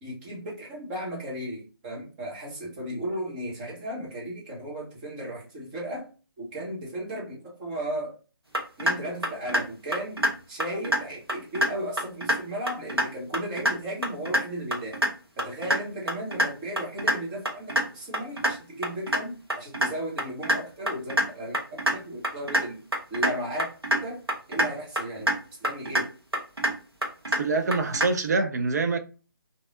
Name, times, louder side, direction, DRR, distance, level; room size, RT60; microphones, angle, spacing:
voice 1, 0.0-6.1 6.4-8.2 8.8-10.2 10.5-15.0 15.4-22.8 23.1-23.7 24.0-24.2 24.5-25.3 25.6-26.1, equal, 20° right, 1.0 m, -35 dB
sound 1, 8.5-8.9 9.2-9.6 9.9-10.3 10.6-11.0 11.3-11.7 12.0-12.4 12.7-13.0 13.3-13.7 14.0-14.4 14.7-15.1 15.4-15.8 16.1-16.5 16.8-17.1 17.4-17.8 18.1-18.5 18.8-19.2 19.5-19.9 20.2-20.6 20.9-21.3 21.5-21.9 22.2-22.6 22.9-23.3 23.6-24.0 24.3-24.7 25.0-25.4 25.6-26.0 26.3-26.7 27.0-27.4 27.7-28.1, right 1 dB, 90° right, 1.0 m, -24 dB
voice 2, 27.4-29.0, right 3 dB, 45° right, 0.5 m, -25 dB
3.3 x 2.6 x 2.4 m
figure-of-eight pair, 145°, 12 cm